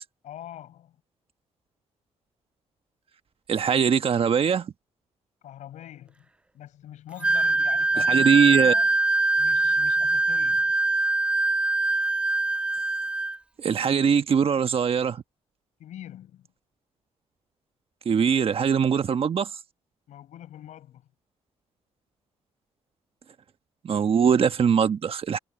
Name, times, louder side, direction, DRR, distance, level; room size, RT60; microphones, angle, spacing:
voice 1, 0.2-1.0 5.4-6.3 6.5-9.0 9.4-10.7 15.8-16.5 20.1-21.1, left 11 dB, 80° left, 5.5 m, -43 dB
voice 2, 3.5-4.7 8.1-8.7 13.6-15.2 18.0-19.5 23.8-25.4, right 7 dB, 50° right, 1.2 m, -21 dB
Wind instrument woodwind instrument, 7.2-13.4, right 2 dB, 10° right, 0.3 m, -23 dB
cardioid pair, 75°, 12 cm